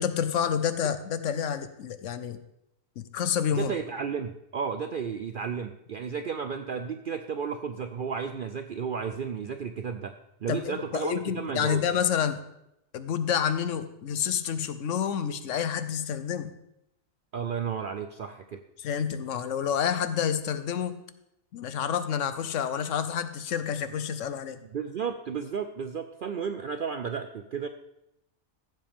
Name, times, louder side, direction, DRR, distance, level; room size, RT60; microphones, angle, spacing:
voice 1, 0.0-2.4 3.0-3.7 10.5-12.4 12.9-16.5 18.8-21.0 21.5-24.6, left 8 dB, 70° left, 12 dB, 1.0 m, -29 dB
voice 2, 3.5-10.1 10.4-11.8 17.3-18.6 24.7-27.7, right 6 dB, 65° right, 8 dB, 0.5 m, -33 dB
14.5 x 7.5 x 3.5 m, 0.82 s
omnidirectional pair, 1.4 m